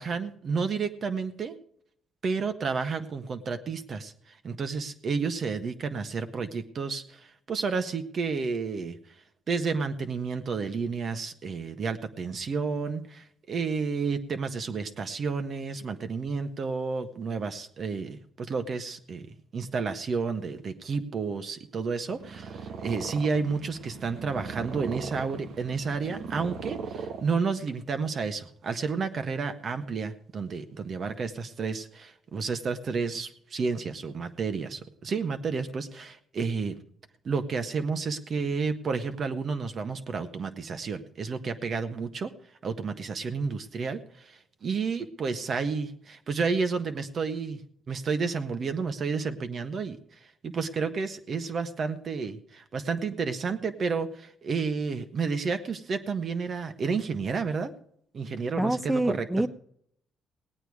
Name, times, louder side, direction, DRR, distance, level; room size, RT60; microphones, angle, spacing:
voice 1, 0.0-1.5 2.2-9.0 9.5-19.3 19.5-36.8 37.2-42.3 42.6-47.6 47.9-50.0 50.4-57.7 58.1-59.3, right 5 dB, 50° right, 8 dB, 1.5 m, -31 dB
Purr, 22.0-27.7, right 5 dB, 75° right, 1.2 m, -39 dB
voice 2, 58.6-59.5, right 1 dB, 5° right, 14 dB, 0.8 m, -26 dB
18.0 x 9.1 x 5.0 m, 0.68 s
cardioid pair, 90°, 0 cm